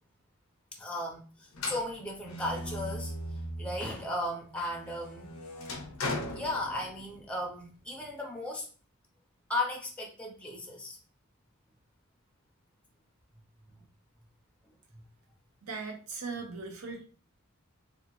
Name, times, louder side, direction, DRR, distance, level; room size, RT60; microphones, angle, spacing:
voice 1, 0.7-3.1 3.6-5.3 6.0-8.7 9.5-11.0 14.9-15.0, left 1 dB, 5° left, 0 dB, 0.4 m, -36 dB
sound 1, 1.5-4.0 4.4-7.2, left 1 dB, 85° left, 0.6 m, -38 dB
voice 2, 15.6-17.1, right 4 dB, 90° right, 3 dB, 0.7 m, -39 dB
2.7 x 2.1 x 2.9 m, 0.38 s
head